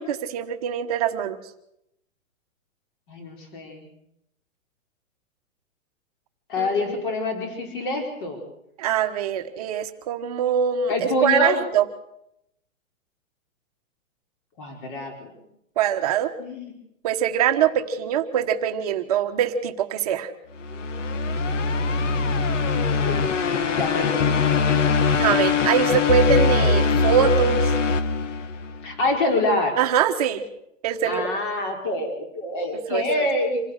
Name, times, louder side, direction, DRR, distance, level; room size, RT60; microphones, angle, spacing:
voice 1, 0.0-1.4 6.6-6.8 8.8-11.9 15.8-16.3 17.0-20.3 25.1-27.7 29.8-30.4 30.8-31.3 32.9-33.0, right 8 dB, 30° right, 7 dB, 1.2 m, -23 dB
voice 2, 3.1-3.9 6.5-8.4 10.9-11.6 14.6-15.3 16.4-16.7 22.7-23.3 23.7-24.4 28.8-29.8 31.0-33.6, left 2 dB, 40° left, 3 dB, 4.9 m, -26 dB
sound 1, 20.6-28.9, left 4 dB, 65° left, 1.4 m, -22 dB
26.5 x 16.0 x 6.5 m, 0.81 s
hypercardioid pair, 175°, 40 cm